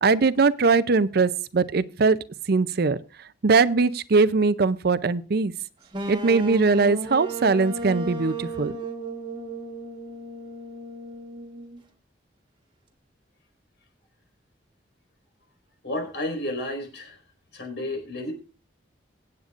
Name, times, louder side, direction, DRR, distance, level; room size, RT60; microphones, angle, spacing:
voice 1, 0.0-2.2 2.5-3.0 3.4-5.5 6.1-8.7, right 4 dB, 60° right, 16 dB, 0.5 m, -21 dB
sound 1, 5.9-11.8, right 2 dB, 25° right, 1.4 m, -34 dB
voice 2, 15.8-17.2 17.5-18.3, left 1 dB, 75° left, 3 dB, 5.0 m, -31 dB
24.0 x 8.7 x 2.5 m, 0.32 s
head